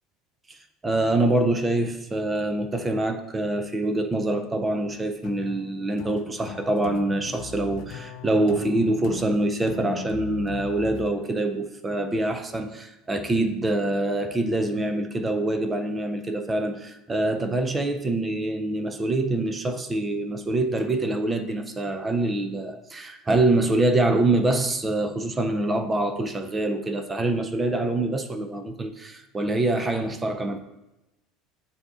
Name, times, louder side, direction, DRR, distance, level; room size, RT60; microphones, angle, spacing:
voice 1, 0.8-30.6, right 2 dB, 15° right, 8 dB, 0.4 m, -25 dB
sound 1, 5.2-11.1, left 8 dB, 55° left, 0.5 m, -39 dB
7.8 x 2.7 x 4.7 m, 0.97 s
cardioid pair, 145°, 0 cm